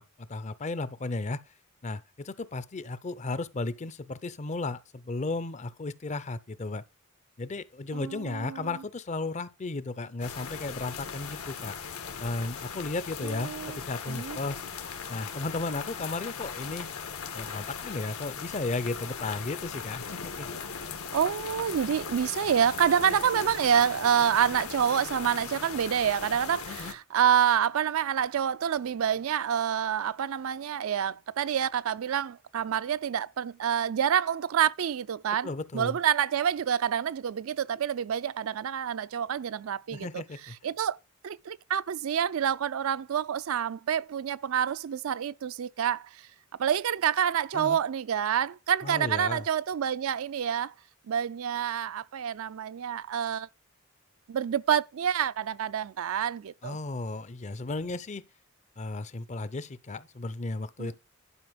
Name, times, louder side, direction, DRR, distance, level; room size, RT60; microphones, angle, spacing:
voice 1, 0.0-1.4 1.8-6.8 7.4-11.8 12.2-14.6 15.1-16.9 17.3-20.5 26.7-26.9 35.4-36.0 39.9-40.6 47.5-47.8 48.8-49.4 56.6-58.2 58.8-61.0, left 3 dB, 30° left, 0.5 m, -34 dB
voice 2, 7.9-8.7 13.2-13.8 14.1-14.4 21.1-40.2 40.6-41.0 41.2-46.3 46.6-50.7 51.1-53.5 54.3-56.8 60.8-60.9, right 8 dB, 65° right, 0.4 m, -27 dB
sound 1, 10.2-26.9, left 6 dB, 80° left, 1.4 m, -39 dB
11.0 x 5.0 x 5.1 m
head